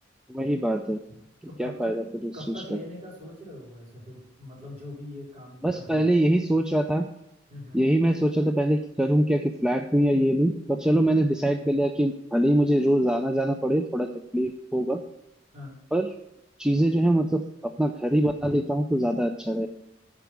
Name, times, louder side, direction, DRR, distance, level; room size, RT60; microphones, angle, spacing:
voice 1, 0.3-1.0 1.6-2.8 5.6-7.0 7.7-14.1 14.3-15.0 15.9-16.1 16.6-19.7, right 1 dB, 5° right, 5 dB, 0.4 m, -23 dB
voice 2, 1.1-1.9 2.3-6.1 7.5-7.9 15.5-15.8, left 1 dB, 35° right, -4 dB, 4.1 m, -42 dB
10.5 x 5.0 x 5.9 m, 0.86 s
head